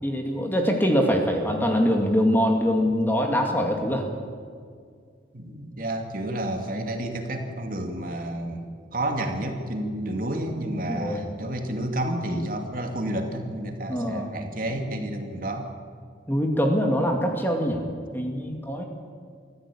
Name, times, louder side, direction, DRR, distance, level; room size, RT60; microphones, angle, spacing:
voice 1, 0.0-4.1 10.9-11.2 13.9-14.3 16.3-17.8 18.1-18.8, equal, 10° left, 2 dB, 2.4 m, -23 dB
voice 2, 5.3-15.7, right 1 dB, 50° right, 4 dB, 2.5 m, -30 dB
24.0 x 14.5 x 8.7 m, 2.1 s
head